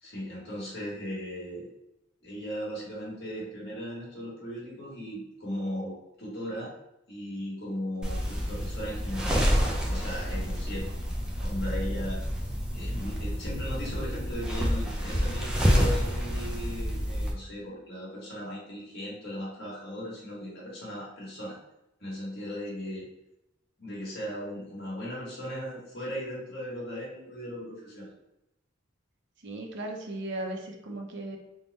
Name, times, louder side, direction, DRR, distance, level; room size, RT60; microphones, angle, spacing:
voice 1, 0.0-1.7 2.2-6.7 7.1-9.5 9.9-10.9 11.4-21.6 22.0-23.1 23.8-28.1, equal, 55° left, -5 dB, 1.4 m, -37 dB
sound 1, 8.0-17.3, equal, 5° right, 0.5 m, -28 dB
voice 2, 29.4-31.4, right 1 dB, 60° right, 2 dB, 0.6 m, -36 dB
3.5 x 2.1 x 4.0 m, 0.88 s
head